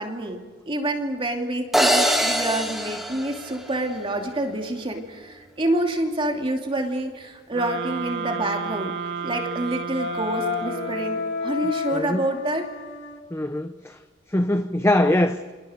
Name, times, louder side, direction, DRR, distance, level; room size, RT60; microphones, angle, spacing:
voice 1, 0.0-8.9 9.2-12.7, right 1 dB, 30° right, 2.7 m, -27 dB
sound 1, 1.7-4.1, equal, ahead, 3.2 m, -23 dB
sound 2, 7.5-11.4, right 6 dB, 60° right, 2.7 m, -32 dB
Wind instrument woodwind instrument, 10.0-13.2, left 5 dB, 65° left, 2.5 m, -30 dB
voice 2, 11.9-12.3 13.3-14.0 14.3-15.4, left 1 dB, 15° left, 0.8 m, -22 dB
29.5 x 26.5 x 5.1 m
head